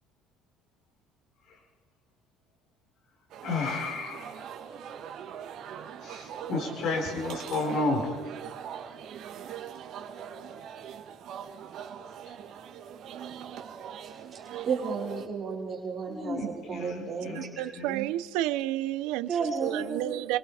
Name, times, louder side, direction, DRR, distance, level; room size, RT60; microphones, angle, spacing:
sound 1, 3.3-15.3, right 8 dB, 45° right, 2.4 m, -42 dB
voice 1, 3.4-4.4 6.0-8.1 16.1-18.1, left 2 dB, 45° left, 5.2 m, -32 dB
voice 2, 14.0-17.7 19.3-20.2, right 5 dB, 25° right, 4.5 m, -33 dB
voice 3, 17.4-19.3 19.6-20.4, right 15 dB, 75° right, 0.9 m, -30 dB
28.0 x 23.5 x 5.0 m
cardioid pair, 175°, 0 cm